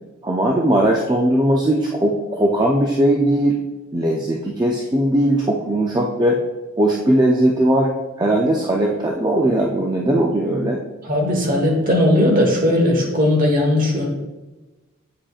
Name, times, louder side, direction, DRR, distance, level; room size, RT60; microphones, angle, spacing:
voice 1, 0.2-3.6 3.9-6.4 6.8-7.9 8.2-10.8, right 1 dB, 20° right, -1 dB, 0.4 m, -18 dB
voice 2, 11.0-14.1, left 1 dB, 40° right, 1 dB, 1.2 m, -17 dB
8.5 x 5.1 x 2.4 m, 1.1 s
head